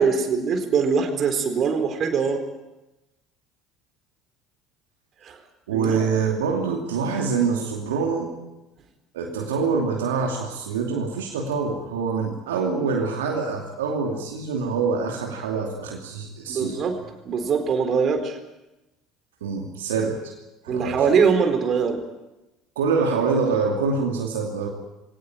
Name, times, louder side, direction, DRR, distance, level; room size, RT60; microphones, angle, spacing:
voice 1, 0.0-2.4 5.2-5.4 5.7-6.0 16.5-17.0 17.2-18.4 20.7-22.0, right 5 dB, 45° right, 6 dB, 4.1 m, -22 dB
voice 2, 5.7-8.3 9.1-16.8 19.4-20.3 20.6-21.0 22.8-24.7, right 5 dB, 75° right, 1 dB, 2.7 m, -25 dB
22.0 x 18.5 x 9.1 m, 1.0 s
figure-of-eight pair, 65°, 0 cm